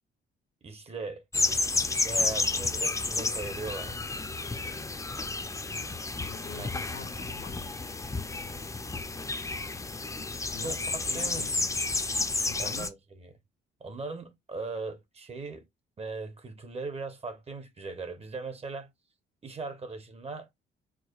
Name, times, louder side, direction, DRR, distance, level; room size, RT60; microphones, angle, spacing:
voice 1, 0.6-1.2 1.9-4.2 6.6-6.7 10.6-11.5 12.6-13.3 13.8-15.7 16.0-18.9 19.4-20.5, right 3 dB, 30° right, 0.9 m, -39 dB
sound 1, 1.3-12.9, left 3 dB, 15° left, 0.5 m, -31 dB
voice 2, 6.2-7.7 10.4-10.8 11.1-11.7 12.4-12.9, left 7 dB, 70° left, 0.9 m, -45 dB
4.8 x 2.2 x 2.4 m
cardioid pair, 90°, 20 cm